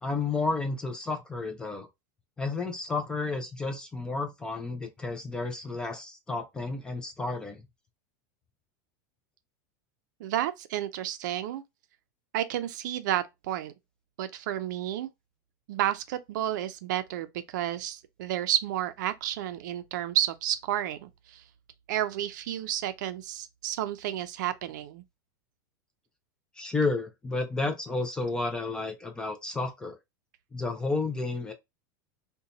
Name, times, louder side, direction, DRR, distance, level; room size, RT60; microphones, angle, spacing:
voice 1, 0.0-1.9 2.4-7.6 26.6-30.0 30.5-31.5, left 3 dB, 10° left, 0.4 m, -31 dB
voice 2, 10.2-11.6 12.3-13.7 14.2-15.1 15.7-21.4 21.9-25.0, right 12 dB, 75° right, 0.4 m, -31 dB
2.7 x 2.2 x 3.9 m
supercardioid pair, 170°, 10 cm